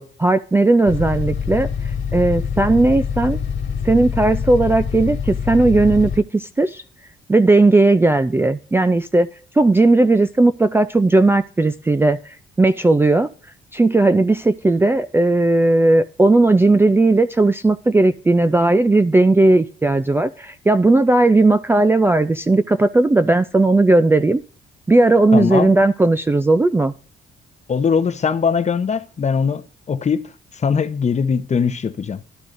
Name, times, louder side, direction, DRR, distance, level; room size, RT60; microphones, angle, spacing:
voice 1, 0.0-3.4 3.8-6.8 7.3-9.3 9.5-13.3 13.7-24.4 24.9-26.9, right 2 dB, 10° right, 0.3 m, -16 dB
sound 1, 0.9-6.2, left 7 dB, 65° left, 1.7 m, -25 dB
voice 2, 25.3-25.7 27.7-30.2 30.5-32.2, left 6 dB, 35° left, 0.7 m, -20 dB
12.0 x 11.5 x 2.6 m
cardioid pair, 90°, 20 cm